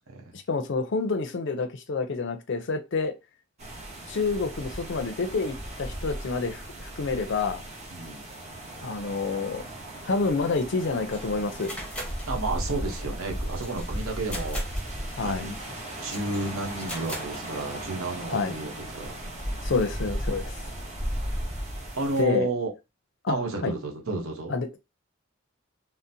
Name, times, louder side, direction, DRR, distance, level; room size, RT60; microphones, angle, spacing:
voice 1, 0.3-3.1 4.1-7.6 8.8-9.6 10.1-11.8 15.1-15.5 18.3-18.5 19.6-20.5 22.2-22.5 23.2-23.7 24.5-24.8, left 4 dB, 60° left, 0.5 m, -28 dB
sound 1, 3.6-22.2, right 1 dB, 35° right, 0.9 m, -36 dB
voice 2, 7.9-8.3 12.3-14.6 15.2-15.5 16.0-19.1 21.9-22.7 23.3-24.5, right 2 dB, 85° right, 0.9 m, -31 dB
sound 2, 11.0-17.9, left 1 dB, 5° left, 0.7 m, -42 dB
3.7 x 2.0 x 2.7 m
head